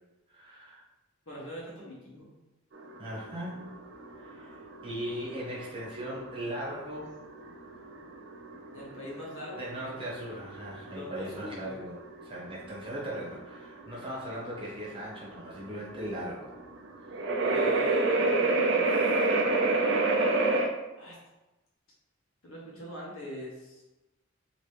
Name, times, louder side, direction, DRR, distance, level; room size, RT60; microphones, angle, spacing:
voice 1, 0.3-0.8 3.0-3.7 4.2-7.1 9.6-16.5, equal, 25° right, -5 dB, 1.0 m, -38 dB
voice 2, 1.3-2.3 8.7-9.7 10.9-11.7 17.4-19.2 21.0-21.2 22.4-23.8, equal, 80° left, -5 dB, 1.3 m, -43 dB
sound 1, 2.7-20.7, right 2 dB, 60° right, 0.4 m, -29 dB
3.0 x 2.9 x 3.2 m, 1.0 s
head